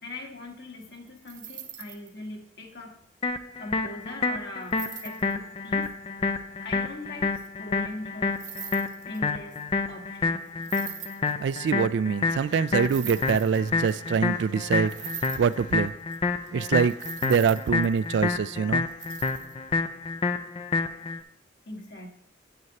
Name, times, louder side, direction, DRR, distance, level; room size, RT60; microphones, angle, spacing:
voice 1, 0.0-3.0 3.6-5.9 6.6-8.4 9.1-9.6 9.9-10.4 21.6-22.1, left 2 dB, 60° left, 1.6 m, -41 dB
sound 1, 0.8-2.1 4.6-5.3 8.3-9.3 10.6-11.7 12.8-14.1 14.9-16.2 16.5-16.6 16.7-18.4 18.9-19.5, right 10 dB, 45° right, 0.8 m, -41 dB
sound 2, 3.2-21.2, left 4 dB, 30° left, 0.4 m, -29 dB
voice 2, 11.4-14.9 15.4-15.9 16.5-16.9 17.2-18.9, right 6 dB, 65° right, 0.3 m, -24 dB
9.4 x 8.9 x 2.9 m
head